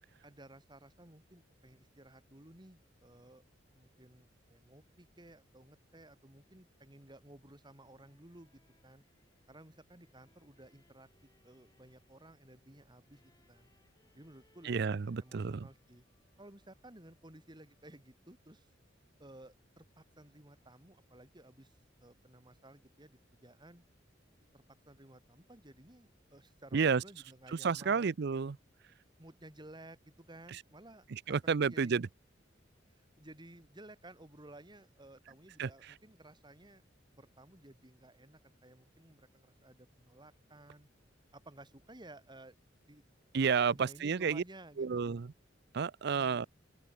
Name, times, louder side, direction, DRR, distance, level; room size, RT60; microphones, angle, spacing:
voice 1, 0.2-3.4 3.7-9.0 9.5-11.1 11.4-13.7 14.1-16.0 16.4-18.7 19.2-23.8 24.5-28.2 29.2-32.0 33.2-36.8 37.1-40.9 41.3-42.6 42.9-43.0 43.6-45.2, right 1 dB, 25° right, 3.1 m, -56 dB
sound 1, 7.6-18.2, left 2 dB, 20° left, 6.7 m, -75 dB
voice 2, 14.6-15.6 26.7-27.0 27.6-28.6 31.1-32.1 35.6-35.7 43.3-44.4 44.8-45.3 45.7-46.5, right 5 dB, 60° right, 0.5 m, -31 dB
open air
head